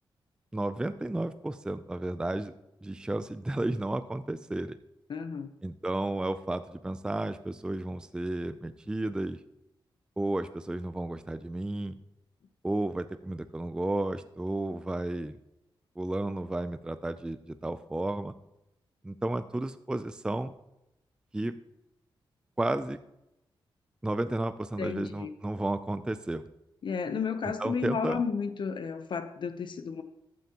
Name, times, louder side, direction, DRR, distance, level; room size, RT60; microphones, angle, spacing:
voice 1, 0.5-2.5 2.8-4.8 5.6-9.4 10.2-11.9 12.6-15.3 16.0-18.3 19.0-20.5 21.3-21.6 22.6-23.0 24.0-26.4 27.6-28.2, right 2 dB, 10° right, 11 dB, 0.4 m, -32 dB
voice 2, 5.1-5.5 24.8-25.3 26.8-30.0, left 5 dB, 65° left, 9 dB, 0.7 m, -32 dB
14.0 x 9.3 x 2.9 m, 0.89 s
wide cardioid pair, 125°, 9 cm